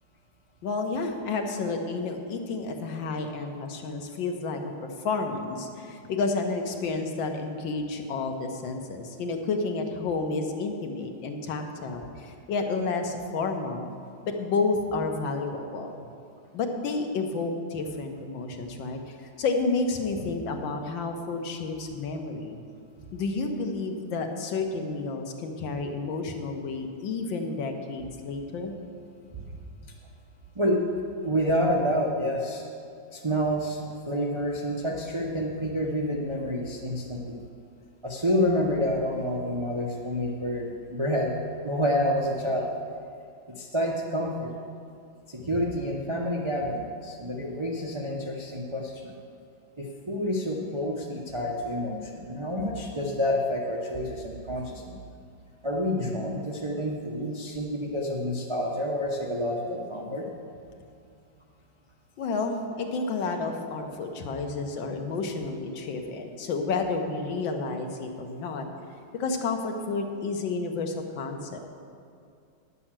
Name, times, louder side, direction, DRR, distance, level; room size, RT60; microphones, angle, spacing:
voice 1, 0.6-4.6 5.0-13.9 14.2-16.1 16.5-22.6 23.1-28.7 45.4-45.5 62.2-68.6 69.2-71.6, left 3 dB, 80° left, 4 dB, 1.7 m, -30 dB
voice 2, 31.2-32.6 33.1-37.4 38.0-42.7 43.6-44.5 45.3-49.2 49.8-55.0 55.6-60.3, equal, 45° right, -2 dB, 0.3 m, -28 dB
9.9 x 6.8 x 7.4 m, 2.4 s
omnidirectional pair, 2.1 m